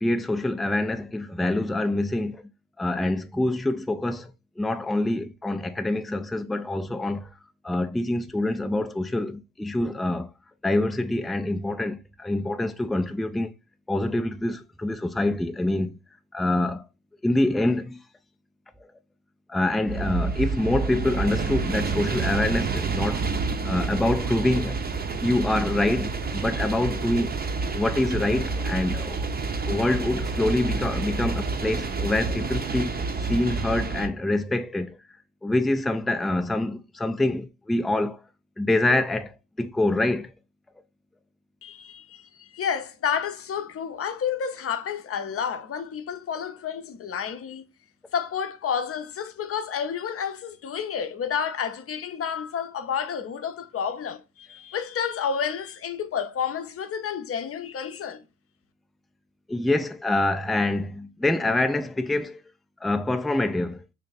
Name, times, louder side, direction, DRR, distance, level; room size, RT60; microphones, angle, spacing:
voice 1, 0.0-2.4 2.8-4.3 4.6-7.3 7.6-10.3 10.6-13.5 13.9-15.9 16.3-16.8 17.2-18.0 19.5-23.2 23.6-24.8 25.2-27.3 27.7-29.2 29.7-35.0 35.4-38.2 38.6-40.3 59.5-62.4 62.8-63.8, left 2 dB, ahead, 0.3 m, -25 dB
sound 1, 19.9-34.1, right 4 dB, 30° right, 0.7 m, -29 dB
voice 2, 41.6-47.6 48.1-58.2, left 7 dB, 45° left, 0.6 m, -30 dB
3.3 x 2.5 x 3.9 m
supercardioid pair, 65°, 33 cm